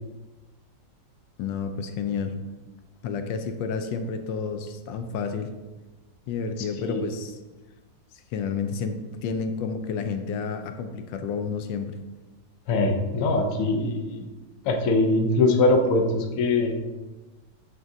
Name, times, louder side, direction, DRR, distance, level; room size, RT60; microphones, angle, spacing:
voice 1, 1.4-2.3 3.0-5.5 6.3-7.4 8.3-12.0, left 5 dB, 80° left, 7 dB, 1.2 m, -30 dB
voice 2, 12.7-14.2 14.7-16.8, left 2 dB, 60° left, 4 dB, 0.9 m, -22 dB
9.2 x 3.8 x 2.7 m, 1.2 s
omnidirectional pair, 2.0 m